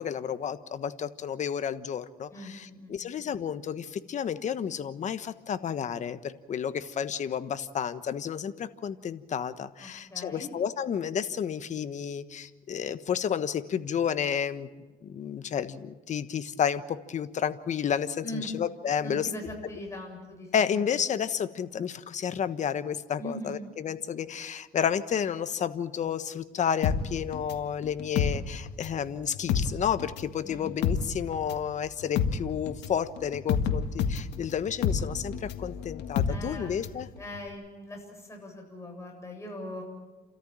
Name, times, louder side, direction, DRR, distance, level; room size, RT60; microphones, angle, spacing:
voice 1, 0.0-14.7 15.0-19.3 20.5-37.1, left 8 dB, 45° left, 12 dB, 1.3 m, -31 dB
voice 2, 2.3-3.1 9.8-10.5 18.2-18.5 19.0-20.8 23.2-23.6 30.4-30.7 36.3-36.8 37.1-39.8, left 1 dB, 15° left, 1 dB, 7.6 m, -41 dB
sound 1, 26.8-29.0 29.3-37.0 37.3-37.4, left 7 dB, 80° left, 1.8 m, -29 dB
29.5 x 14.0 x 8.9 m, 1.3 s
cardioid pair, 110°, 17 cm